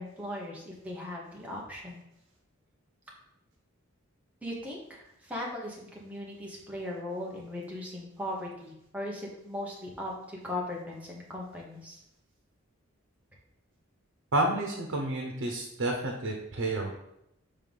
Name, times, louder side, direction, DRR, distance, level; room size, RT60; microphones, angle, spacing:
voice 1, 0.0-2.0 4.4-12.0, left 1 dB, 5° right, -3 dB, 1.1 m, -38 dB
voice 2, 14.3-16.9, right 2 dB, 85° right, 1 dB, 0.9 m, -30 dB
5.6 x 3.7 x 5.4 m, 0.83 s
head